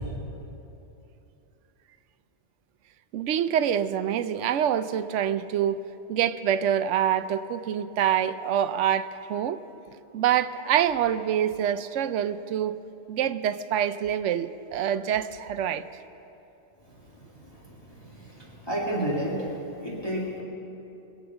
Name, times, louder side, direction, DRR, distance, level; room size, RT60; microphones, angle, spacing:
voice 1, 3.1-5.8 6.1-9.6 10.1-12.8 13.1-15.8, right 9 dB, 85° right, 13 dB, 0.9 m, -26 dB
voice 2, 18.7-19.4 19.8-20.4, right 1 dB, 20° left, -5 dB, 2.2 m, -29 dB
22.5 x 8.0 x 6.9 m, 2.9 s
omnidirectional pair, 1.2 m